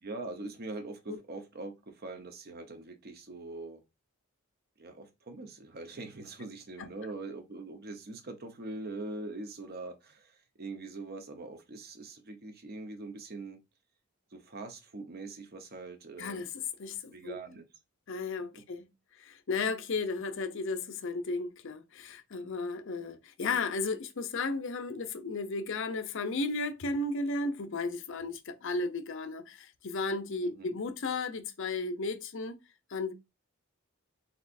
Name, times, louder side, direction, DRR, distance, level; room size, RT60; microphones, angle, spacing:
voice 1, 0.0-3.8 4.8-13.6 14.3-16.5 17.1-17.7 18.5-18.6 30.4-30.8, right 2 dB, 50° right, 0.9 m, -43 dB
voice 2, 16.2-16.5 16.8-17.4 18.1-18.9 19.2-32.6 32.9-33.1, left 3 dB, 65° left, 0.6 m, -34 dB
4.3 x 3.9 x 2.5 m
head